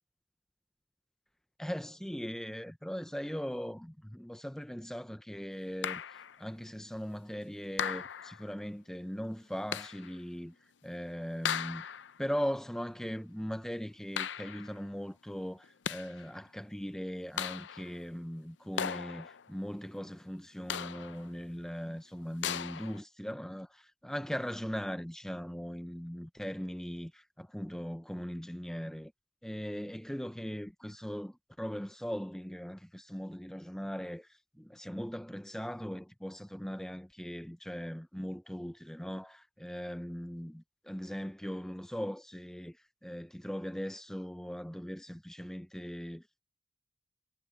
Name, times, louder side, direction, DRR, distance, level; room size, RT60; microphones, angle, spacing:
voice 1, 1.6-11.8 12.2-29.1 29.4-46.4, equal, 5° left, 0.5 m, -39 dB
sound 1, 5.8-6.4 7.8-8.5 9.7-10.2 11.4-12.2 14.2-14.8 15.6-16.3 17.4-18.0 18.8-19.5 20.7-21.3 22.4-23.0, left 8 dB, 65° left, 0.5 m, -37 dB
head